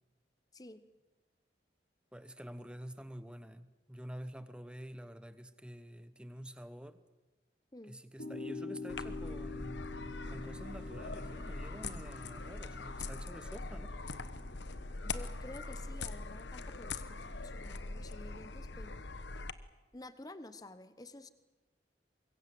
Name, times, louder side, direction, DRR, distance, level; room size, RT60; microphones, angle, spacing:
voice 1, 0.5-0.9 7.7-8.0 15.0-19.0 19.9-21.3, left 1 dB, 20° left, 12 dB, 1.1 m, -51 dB
voice 2, 2.1-7.0 7.9-9.9 10.3-14.0, equal, 5° right, 12 dB, 1.0 m, -48 dB
sound 1, 8.2-14.6, left 3 dB, 60° left, 4.6 m, -46 dB
sound 2, 8.9-19.5, left 3 dB, 85° left, 1.2 m, -42 dB
sound 3, 9.0-18.3, right 1 dB, 65° right, 2.0 m, -57 dB
24.5 x 22.5 x 7.8 m, 1.1 s
head